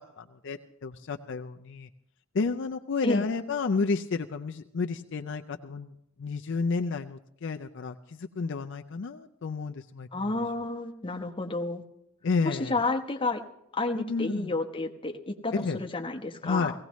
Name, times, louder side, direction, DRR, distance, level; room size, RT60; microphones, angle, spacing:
voice 1, 0.2-1.9 2.3-5.9 6.2-10.3 12.2-12.8 13.9-14.5 15.5-15.8 16.4-16.7, left 4 dB, 60° left, 6 dB, 0.5 m, -31 dB
voice 2, 10.1-11.8 12.4-13.4 13.7-16.7, left 2 dB, 25° left, 2 dB, 1.0 m, -30 dB
18.0 x 16.5 x 3.1 m, 0.78 s
head